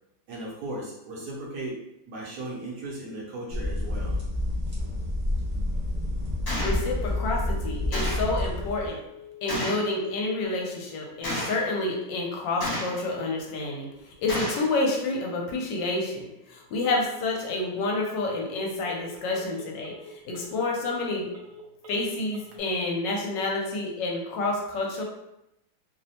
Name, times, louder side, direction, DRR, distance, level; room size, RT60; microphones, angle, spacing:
voice 1, 0.3-1.8 2.1-4.2, right 1 dB, 70° right, -4 dB, 1.0 m, -36 dB
sound 1, 3.5-8.9, left 1 dB, 35° right, 0.7 m, -29 dB
Gunshot gunfire, 6.5-6.8 7.9-8.3 9.5-9.9 11.2-11.6 12.6-13.1 14.3-14.7, left 1 dB, 50° left, 1.3 m, -31 dB
voice 2, 6.6-9.0 9.4-13.9 14.2-21.3 21.9-25.0, left 2 dB, 75° left, -1 dB, 1.2 m, -29 dB
Telephone, 6.6-22.6, left 5 dB, 90° right, 0.7 m, -48 dB
3.1 x 2.0 x 2.7 m, 0.87 s
omnidirectional pair, 2.0 m